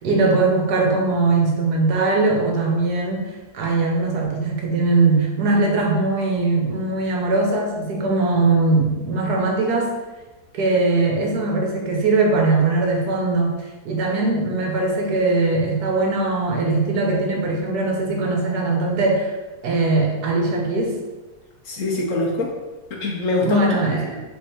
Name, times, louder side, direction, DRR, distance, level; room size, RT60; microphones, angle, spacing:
voice 1, 0.0-9.9 10.5-19.3 19.6-21.0 23.4-24.2, right 3 dB, 75° right, 0 dB, 1.4 m, -20 dB
voice 2, 21.7-22.5 23.0-24.2, left 2 dB, 60° left, -1 dB, 0.9 m, -24 dB
3.7 x 3.3 x 4.3 m, 1.2 s
omnidirectional pair, 1.7 m